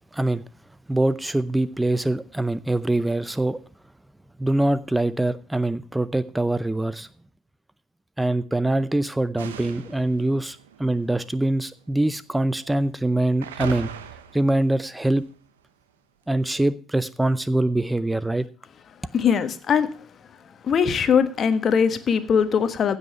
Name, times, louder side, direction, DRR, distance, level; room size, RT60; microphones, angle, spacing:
voice 1, 0.9-3.6 4.4-7.1 8.2-13.9 14.3-15.3 16.3-18.5, right 1 dB, 10° right, 0.6 m, -23 dB
sound 1, 9.4-11.8 12.4-12.9 13.4-15.3, right 8 dB, 85° right, 0.9 m, -39 dB
voice 2, 19.1-19.9 20.6-23.0, left 7 dB, 45° left, 1.3 m, -21 dB
15.5 x 5.6 x 5.6 m
hypercardioid pair, 60°, 0 cm